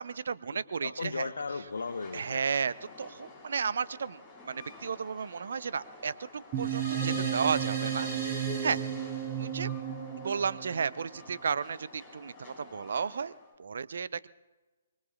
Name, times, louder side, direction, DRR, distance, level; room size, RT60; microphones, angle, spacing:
voice 1, 0.0-1.3 2.1-8.8 9.4-9.8 10.2-13.3 13.6-14.3, right 6 dB, 60° right, 18 dB, 0.6 m, -33 dB
voice 2, 0.5-2.4 7.1-7.2, left 4 dB, 65° left, 10 dB, 0.9 m, -36 dB
Train, 1.6-13.6, left 2 dB, 15° left, 6.3 m, -51 dB
sound 1, 6.5-11.3, right 8 dB, 25° right, 4.7 m, -33 dB
24.5 x 24.0 x 2.4 m, 1.2 s
figure-of-eight pair, 130°, 0 cm